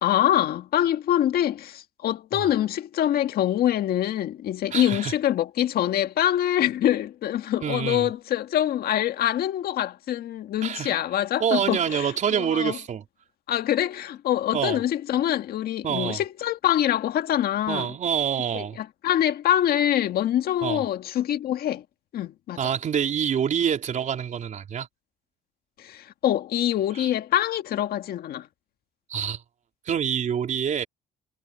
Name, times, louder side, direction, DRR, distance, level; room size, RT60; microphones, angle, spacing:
voice 1, 0.0-12.8 13.5-17.9 18.5-21.8 22.1-22.6 25.8-28.5, left 11 dB, 65° left, 1.9 m, -25 dB
voice 2, 4.7-5.1 7.6-8.1 10.6-11.0 11.4-13.0 14.5-14.8 15.8-16.2 17.7-18.8 20.6-20.9 22.6-24.9 26.9-27.1 29.1-29.4 29.9-30.9, right 8 dB, 45° right, 4.1 m, -26 dB
cardioid pair, 110°, 17 cm